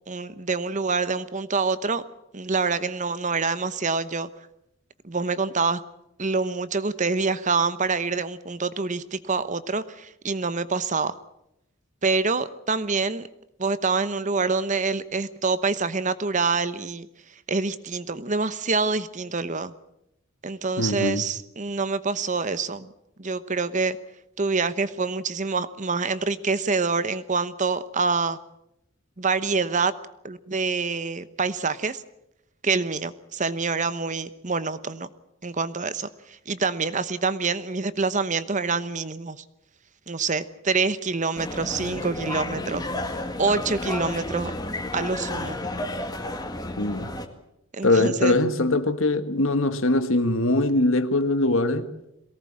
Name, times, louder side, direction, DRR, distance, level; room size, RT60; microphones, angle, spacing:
voice 1, 0.1-2.0 2.3-4.3 5.0-5.8 6.2-11.1 12.0-13.3 13.6-17.1 17.5-19.7 20.4-22.9 23.2-24.0 24.4-28.4 29.2-29.9 30.2-32.0 32.6-35.1 35.4-39.4 40.1-42.9 43.4-44.5 44.9-45.6 47.7-48.4, right 4 dB, 35° right, 1.0 m, -26 dB
voice 2, 20.8-21.2 46.8-47.1 47.8-51.9, left 2 dB, 65° left, 1.6 m, -22 dB
sound 1, 41.4-47.3, left 1 dB, 20° left, 1.9 m, -31 dB
23.0 x 18.0 x 8.7 m
head